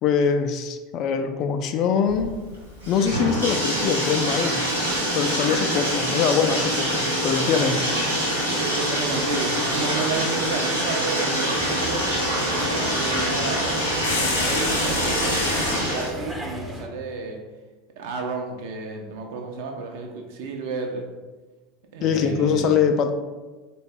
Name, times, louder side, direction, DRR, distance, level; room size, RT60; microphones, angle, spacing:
voice 1, 0.0-2.3 2.9-4.6 5.1-7.9 22.0-23.1, left 6 dB, 45° left, 7 dB, 0.3 m, -23 dB
Bathtub (filling or washing), 2.1-16.1, equal, 90° right, 1.0 m, -25 dB
voice 2, 8.3-13.7 14.3-17.4 18.0-21.1 21.9-22.8, right 4 dB, 60° right, 2 dB, 0.6 m, -32 dB
sound 1, 11.6-16.9, equal, 5° right, 0.5 m, -37 dB
sound 2, 14.0-15.9, left 3 dB, 70° left, 0.6 m, -28 dB
4.0 x 2.2 x 3.4 m, 1.2 s
figure-of-eight pair, 75°, 0 cm